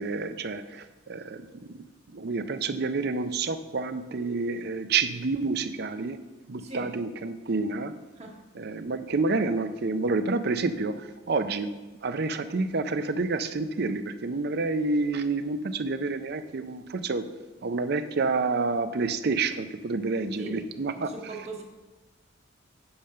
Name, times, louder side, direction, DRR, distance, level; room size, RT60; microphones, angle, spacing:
voice 1, 0.0-1.8 2.1-6.2 6.5-7.9 8.5-11.7 12.0-17.2 17.6-21.1, right 3 dB, 55° right, 11 dB, 0.5 m, -29 dB
voice 2, 21.0-21.6, right 2 dB, 35° right, 1 dB, 1.2 m, -39 dB
8.7 x 5.2 x 5.7 m, 1.2 s
head